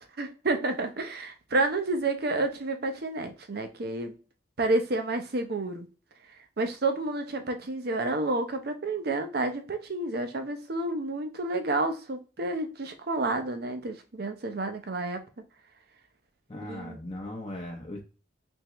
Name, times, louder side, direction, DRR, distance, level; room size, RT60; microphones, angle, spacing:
voice 1, 0.2-4.2 4.6-5.9 6.6-15.2 16.7-17.0, right 2 dB, 60° right, 7 dB, 0.7 m, -30 dB
voice 2, 16.5-18.0, left 1 dB, 30° left, 0 dB, 0.6 m, -38 dB
3.5 x 3.3 x 3.0 m, 0.34 s
head